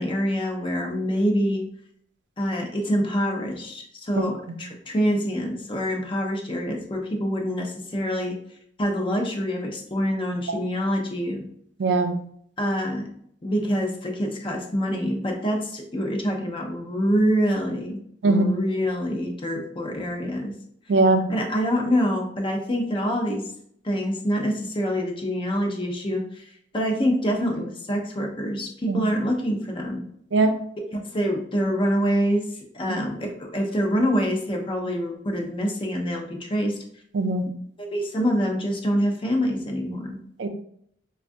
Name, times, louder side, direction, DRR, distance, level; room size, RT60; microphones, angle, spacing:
voice 1, 0.0-1.6 2.4-8.4 8.8-11.5 12.6-13.1 13.4-20.6 21.3-23.4 23.8-26.5 26.7-30.0 31.1-36.8 37.8-40.2, equal, 30° left, 1 dB, 0.6 m, -26 dB
voice 2, 11.8-12.2 18.2-18.5 20.9-21.2 28.9-29.0 30.3-30.6 37.1-37.5 40.4-40.5, right 2 dB, 85° right, 6 dB, 0.5 m, -20 dB
4.3 x 2.4 x 2.6 m, 0.67 s
head